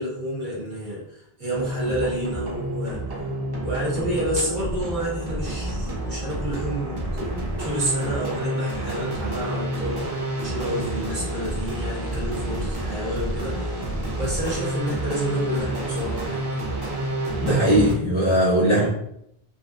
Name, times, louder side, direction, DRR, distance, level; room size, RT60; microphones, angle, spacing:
voice 1, 0.0-3.3 3.6-7.3 7.6-13.6 14.2-16.5, equal, 50° right, -6 dB, 1.0 m, -29 dB
sound 1, 1.5-17.9, right 1 dB, 35° right, 0.4 m, -29 dB
voice 2, 17.4-18.9, equal, 35° left, -7 dB, 0.6 m, -19 dB
2.6 x 2.0 x 2.4 m, 0.75 s
omnidirectional pair, 1.0 m